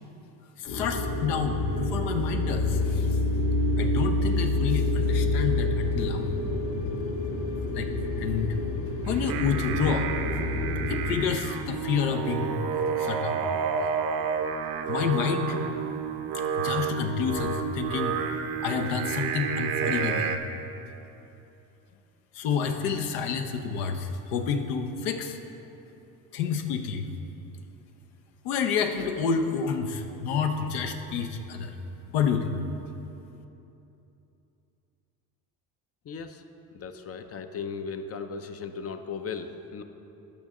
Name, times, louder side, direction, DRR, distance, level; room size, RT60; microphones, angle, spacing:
voice 1, 0.6-3.2 3.8-6.3 7.7-7.9 8.2-8.6 9.1-10.1 10.9-12.6 13.0-13.4 14.9-15.6 16.5-18.2 18.6-20.4 22.3-25.4 26.3-27.1 28.4-31.8 32.1-32.6, left 6 dB, 75° left, 5 dB, 0.9 m, -29 dB
sound 1, 0.7-11.2, left 2 dB, 55° left, 1.2 m, -28 dB
Singing, 9.0-20.4, right 6 dB, 50° right, 0.7 m, -30 dB
voice 2, 36.1-36.4 36.7-39.8, left 5 dB, 30° left, 8 dB, 0.5 m, -37 dB
13.0 x 5.2 x 3.7 m, 2.9 s
hypercardioid pair, 70°, 47 cm